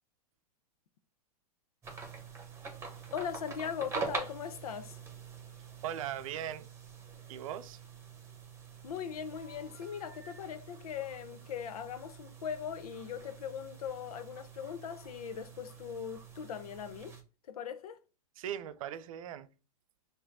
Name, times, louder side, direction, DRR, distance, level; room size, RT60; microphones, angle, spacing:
sound 1, 1.8-17.2, right 4 dB, 15° right, 1.1 m, -45 dB
voice 1, 3.1-5.0 8.8-17.2 17.5-18.0, left 8 dB, 75° left, 0.6 m, -40 dB
voice 2, 5.8-6.7 7.3-7.8 18.4-19.5, right 10 dB, 65° right, 0.6 m, -39 dB
4.8 x 2.7 x 3.6 m
hypercardioid pair, 110°, 19 cm